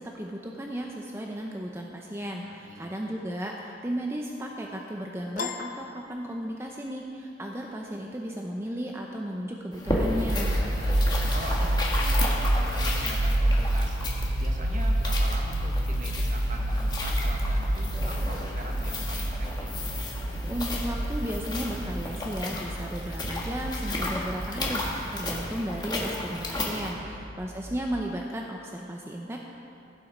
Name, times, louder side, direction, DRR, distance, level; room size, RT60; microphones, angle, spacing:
voice 1, 0.0-10.6 20.5-29.4, equal, 15° right, 0 dB, 0.6 m, -34 dB
voice 2, 2.4-2.9 10.7-14.1 14.4-19.7 27.0-27.2, right 1 dB, 45° right, 1 dB, 1.3 m, -42 dB
Piano, 5.4-6.9, left 5 dB, 45° left, 0.5 m, -37 dB
sound 1, 9.7-26.9, left 2 dB, 25° left, 1.4 m, -34 dB
sound 2, 9.9-27.9, right 1 dB, 70° right, 0.6 m, -29 dB
16.0 x 7.5 x 5.0 m, 2.6 s
head